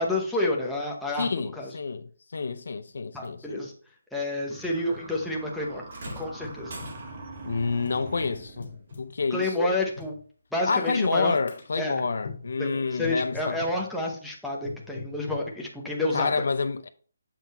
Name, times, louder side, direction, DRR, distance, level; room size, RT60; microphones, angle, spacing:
voice 1, 0.0-1.7 3.1-3.7 4.1-5.8 6.2-6.7 9.3-10.2 10.5-11.4 11.8-12.1 12.6-16.3, left 2 dB, ahead, 0.8 m, -29 dB
voice 2, 1.2-3.6 7.5-9.8 10.7-13.6 16.1-16.9, left 4 dB, 65° left, 0.5 m, -28 dB
sound 1, 2.9-3.0 3.2-3.3 4.2-5.3 6.1-7.0 7.8-9.2 9.9-10.2 10.9-11.2 11.5-11.8 12.2-12.5 13.0-13.8 14.6-15.5, left 5 dB, 45° left, 1.7 m, -42 dB
sound 2, 4.5-8.8, right 3 dB, 25° right, 1.1 m, -43 dB
sound 3, 5.9-7.4 8.9-9.0 9.9-10.0, right 1 dB, 50° right, 2.0 m, -43 dB
7.4 x 3.7 x 4.2 m
hypercardioid pair, 170°, 0 cm